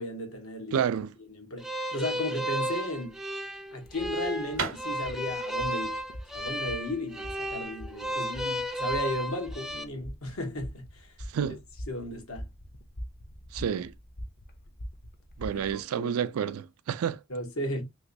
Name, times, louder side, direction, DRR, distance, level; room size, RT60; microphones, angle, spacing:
voice 1, 0.0-0.9 1.3-3.2 3.7-6.0 6.3-11.1 11.9-12.4 15.5-16.2 17.3-17.8, left 1 dB, 85° left, 1.3 m, -35 dB
voice 2, 0.7-1.1 11.3-11.6 13.5-13.9 15.4-17.2, right 8 dB, 90° right, 0.4 m, -29 dB
sound 1, 1.6-9.8, right 1 dB, ahead, 0.3 m, -33 dB
sound 2, 3.2-8.3, right 5 dB, 70° right, 0.7 m, -40 dB
sound 3, 3.8-15.7, equal, 45° left, 0.6 m, -44 dB
3.0 x 3.0 x 2.6 m
head